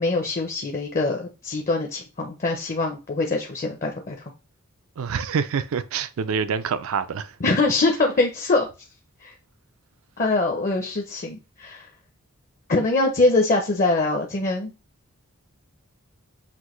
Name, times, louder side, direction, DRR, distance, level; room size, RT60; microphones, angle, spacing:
voice 1, 0.0-4.2 7.4-8.7 9.2-9.3 10.2-11.9 12.7-14.7, left 2 dB, 35° left, 0.5 m, -23 dB
voice 2, 5.0-7.4, right 6 dB, 65° right, 0.4 m, -26 dB
5.9 x 2.5 x 3.0 m
head